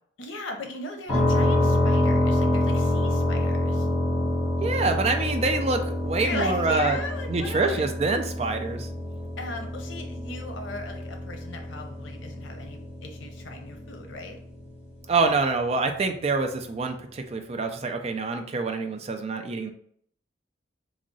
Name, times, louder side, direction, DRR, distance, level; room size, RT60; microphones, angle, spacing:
voice 1, 0.2-3.9 6.2-7.9 9.4-14.4, left 2 dB, 85° left, 4 dB, 0.7 m, -37 dB
sound 1, 1.1-14.8, left 1 dB, 35° left, 1.3 m, -27 dB
voice 2, 4.6-7.0 7.3-8.9 15.1-19.7, right 3 dB, 35° right, 6 dB, 0.3 m, -26 dB
3.5 x 2.0 x 3.9 m, 0.63 s
head